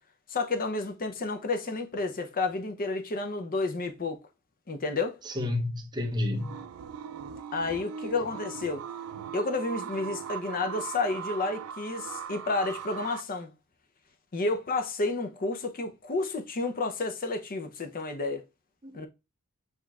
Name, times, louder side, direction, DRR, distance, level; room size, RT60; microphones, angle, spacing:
voice 1, 0.3-4.2 4.7-5.2 7.5-8.8 9.3-13.5 14.3-18.4 18.9-19.1, left 3 dB, 40° left, 0.6 m, -31 dB
voice 2, 5.2-6.6 18.8-19.1, left 2 dB, 20° right, 0.8 m, -31 dB
sound 1, 6.3-13.2, right 7 dB, 70° right, 0.3 m, -40 dB
7.7 x 2.9 x 2.4 m
head